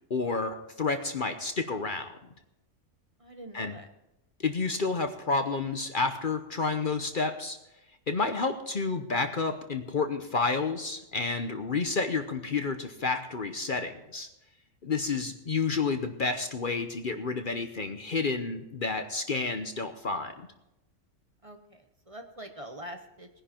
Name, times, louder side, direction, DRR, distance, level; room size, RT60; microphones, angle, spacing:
voice 1, 0.1-2.1 3.5-3.8 4.4-7.6 8.1-14.3 14.8-20.5, left 4 dB, 45° left, 7 dB, 0.9 m, -30 dB
voice 2, 3.2-3.9 21.4-23.3, right 1 dB, 30° right, 5 dB, 1.0 m, -44 dB
19.5 x 10.5 x 4.4 m, 0.89 s
omnidirectional pair, 1.3 m